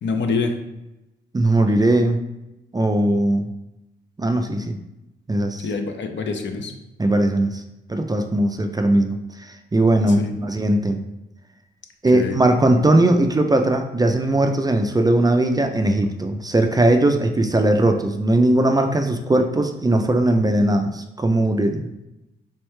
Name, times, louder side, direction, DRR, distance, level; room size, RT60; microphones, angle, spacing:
voice 1, 0.0-0.5 5.6-6.7 10.1-10.3 12.1-12.4, left 4 dB, 65° left, 4 dB, 0.6 m, -25 dB
voice 2, 1.3-2.2 2.7-3.5 4.2-4.8 5.3-5.6 7.0-7.6 7.9-11.0 12.0-21.9, right 1 dB, 20° right, 5 dB, 0.4 m, -19 dB
3.5 x 3.1 x 3.2 m, 0.94 s
cardioid pair, 70°, 20 cm